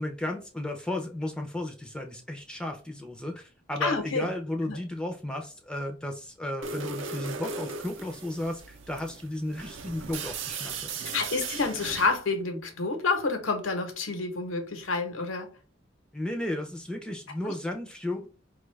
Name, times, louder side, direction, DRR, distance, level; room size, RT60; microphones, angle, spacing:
voice 1, 0.0-11.0 16.1-18.3, left 1 dB, 5° left, 0.5 m, -34 dB
voice 2, 3.8-4.3 4.7-4.8 11.0-15.5 17.4-17.5, left 3 dB, 85° left, 0.9 m, -29 dB
sound 1, 6.6-12.2, right 5 dB, 70° right, 0.6 m, -38 dB
4.5 x 2.3 x 3.2 m
head